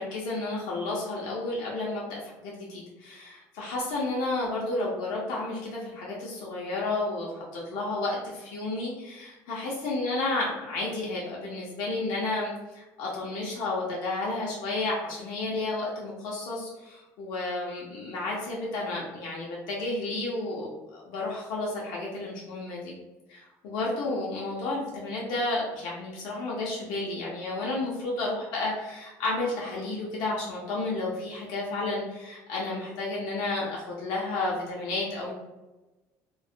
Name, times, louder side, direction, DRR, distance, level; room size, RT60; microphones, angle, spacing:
voice 1, 0.0-22.9 23.3-35.3, left 2 dB, 85° left, -4 dB, 0.6 m, -32 dB
2.3 x 2.0 x 2.6 m, 1.1 s
cardioid pair, 130°, 7 cm